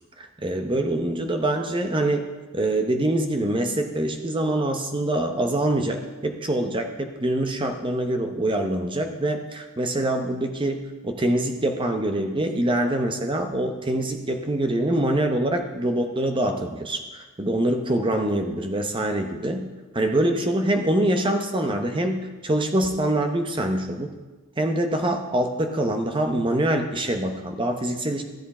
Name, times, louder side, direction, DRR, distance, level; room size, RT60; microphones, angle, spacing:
voice 1, 0.2-2.3 2.5-19.7 19.9-24.1 24.6-28.2, right 1 dB, 25° right, 5 dB, 0.8 m, -24 dB
13.0 x 8.1 x 4.3 m, 1.3 s
head